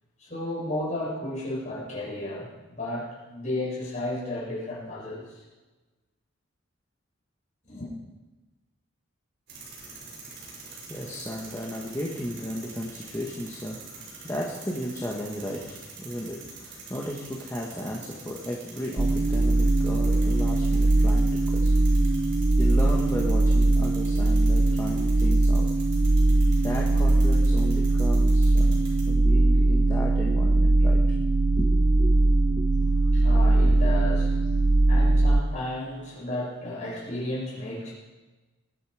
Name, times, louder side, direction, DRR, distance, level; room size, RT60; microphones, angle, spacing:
voice 1, 0.2-5.4 7.6-7.9 33.1-34.6 34.9-37.9, left 1 dB, 35° left, -6 dB, 7.0 m, -33 dB
sound 1, 9.5-29.0, right 4 dB, 50° right, 5.2 m, -46 dB
voice 2, 9.8-21.7 22.6-25.7 26.6-31.0 31.5-32.2 32.6-32.7 33.7-33.8, equal, 15° left, -3 dB, 1.5 m, -35 dB
sound 2, 19.0-35.4, right 2 dB, 30° right, 0.5 m, -21 dB
21.0 x 11.5 x 5.0 m, 1.2 s
head